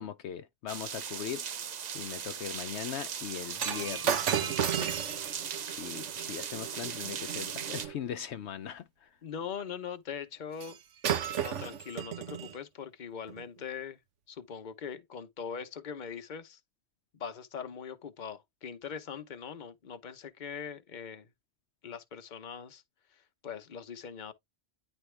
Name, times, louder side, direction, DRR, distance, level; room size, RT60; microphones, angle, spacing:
voice 1, 0.0-1.4 1.9-9.1, left 9 dB, 70° left, 0.9 m, -40 dB
sound 1, 0.7-7.9, right 8 dB, 50° right, 0.6 m, -38 dB
Shatter, 3.6-8.0 10.6-10.8 11.0-12.6 13.3-13.4, right 9 dB, 85° right, 1.2 m, -34 dB
voice 2, 9.2-10.8 11.4-14.0 14.3-16.6 17.1-21.3 21.8-22.8 23.4-24.3, left 7 dB, 45° left, 0.9 m, -41 dB
10.0 x 3.4 x 3.2 m
omnidirectional pair, 1.2 m